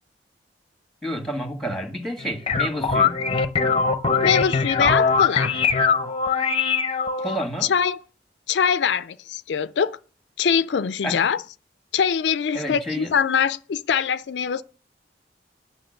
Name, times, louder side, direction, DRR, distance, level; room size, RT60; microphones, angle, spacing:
voice 1, 1.0-3.2 7.2-7.7 11.0-11.3 12.5-13.1, equal, ahead, 1.8 m, -30 dB
sound 1, 2.2-7.4, left 5 dB, 35° left, 0.7 m, -21 dB
voice 2, 4.2-5.6 7.7-8.0 8.5-10.0 10.4-11.4 11.9-14.6, left 7 dB, 75° left, 0.4 m, -23 dB
9.5 x 5.9 x 7.7 m
head